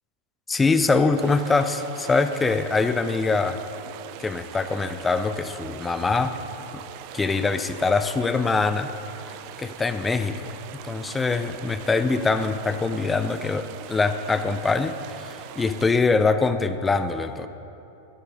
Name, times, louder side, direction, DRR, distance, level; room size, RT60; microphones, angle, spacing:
voice 1, 0.5-3.6 4.2-6.3 6.7-6.8 7.1-8.9 9.6-10.5 10.8-17.5, left 4 dB, 15° left, 10 dB, 0.6 m, -23 dB
sound 1, 1.1-15.9, right 11 dB, 45° right, 0.5 m, -42 dB
14.0 x 11.0 x 5.3 m, 3.0 s
figure-of-eight pair, 90°, 0 cm